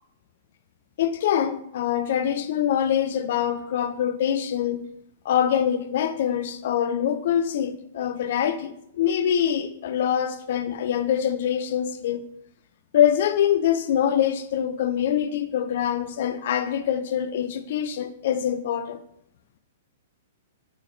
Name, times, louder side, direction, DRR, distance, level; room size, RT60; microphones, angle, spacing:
voice 1, 1.0-4.8 5.3-12.2 12.9-19.0, left 9 dB, 60° left, 0.3 m, -24 dB
3.6 x 3.6 x 2.6 m
hypercardioid pair, 130°, 0 cm